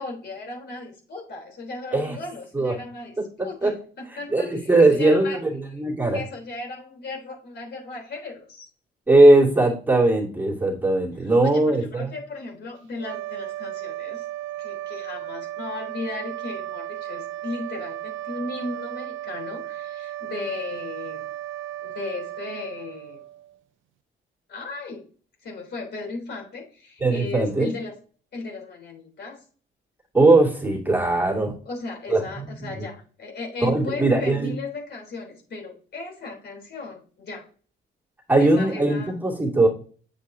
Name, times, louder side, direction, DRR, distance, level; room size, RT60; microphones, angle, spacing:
voice 1, 0.0-5.4 6.1-8.7 11.2-14.3 14.6-21.2 21.8-23.2 24.5-25.0 25.4-27.9 28.3-29.4 31.7-37.5 38.4-39.2, left 3 dB, 60° left, 0 dB, 3.7 m, -36 dB
voice 2, 3.4-3.7 4.3-5.4 5.7-6.2 9.1-12.1 27.0-27.7 30.1-31.5 32.1-32.8 33.6-34.5 38.3-39.7, right 2 dB, 10° right, -3 dB, 2.4 m, -19 dB
sound 1, 13.0-23.6, right 14 dB, 80° right, 0.5 m, -35 dB
8.0 x 7.3 x 2.8 m, 0.41 s
cardioid pair, 90°, 20 cm